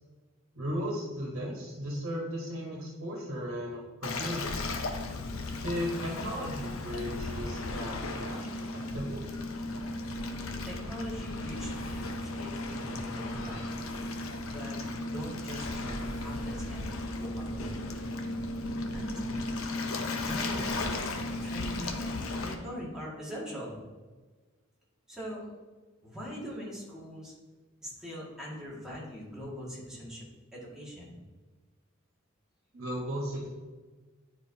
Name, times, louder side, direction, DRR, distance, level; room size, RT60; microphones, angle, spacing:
voice 1, 0.5-4.8 5.6-8.4 8.7-9.2 32.7-33.5, equal, 75° right, -3 dB, 1.4 m, -36 dB
Waves surf, 4.0-22.5, left 2 dB, 85° left, 0.7 m, -35 dB
voice 2, 10.6-13.7 14.5-17.7 18.9-19.5 20.1-21.0 21.4-23.8 25.1-25.4 26.0-27.3 27.8-30.2 30.5-31.1, equal, 5° right, -7 dB, 2.0 m, -42 dB
9.6 x 4.7 x 2.8 m, 1.3 s
head